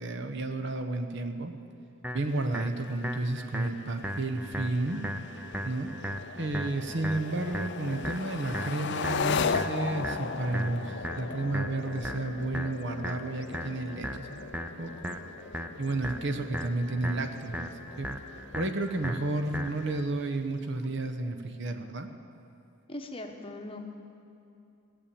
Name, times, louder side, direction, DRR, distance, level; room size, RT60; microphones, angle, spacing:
voice 1, 0.0-1.5 2.1-5.0 5.6-5.9 6.3-15.2 15.8-18.1 18.5-22.1, right 2 dB, 55° right, 6 dB, 0.9 m, -32 dB
sound 1, 2.0-20.0, equal, 5° right, 0.5 m, -38 dB
sound 2, 2.3-21.1, left 5 dB, 50° left, 0.4 m, -38 dB
voice 2, 22.9-23.8, left 1 dB, 25° left, 3 dB, 1.0 m, -40 dB
17.5 x 7.1 x 8.7 m, 2.7 s
head